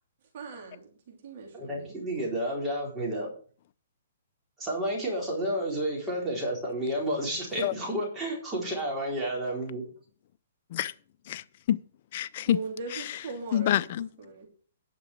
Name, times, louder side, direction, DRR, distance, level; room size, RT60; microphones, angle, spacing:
voice 1, 0.3-2.0 12.5-14.5, right 4 dB, 55° right, 3.1 m, -40 dB
voice 2, 1.5-3.3 4.6-9.8, right 1 dB, 15° right, 4.0 m, -31 dB
voice 3, 11.3-11.8 12.1-12.6 12.9-13.0 13.5-14.1, left 11 dB, 45° left, 0.5 m, -27 dB
10.5 x 6.0 x 6.3 m
hypercardioid pair, 150°, 0 cm